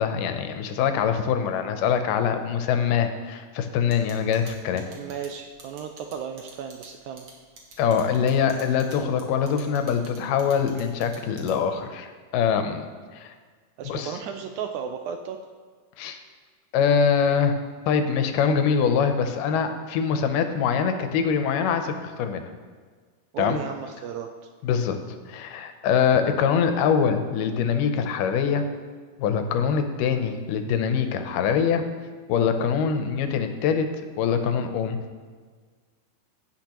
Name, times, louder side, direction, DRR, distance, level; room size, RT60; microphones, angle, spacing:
voice 1, 0.0-4.8 7.8-12.9 13.1-13.3 13.9-14.1 16.0-16.2 16.7-17.5 17.9-22.4 23.4-23.6 24.6-25.0 25.3-28.6 29.2-31.8 32.3-33.9 34.2-35.0, left 7 dB, 85° left, 7 dB, 2.3 m, -23 dB
sound 1, 3.9-11.8, right 3 dB, 50° right, 1.6 m, -48 dB
voice 2, 4.8-7.3 13.8-15.4 23.3-24.3 26.1-26.2, right 7 dB, 80° right, 5 dB, 1.7 m, -34 dB
16.5 x 5.8 x 3.0 m, 1.5 s
omnidirectional pair, 3.7 m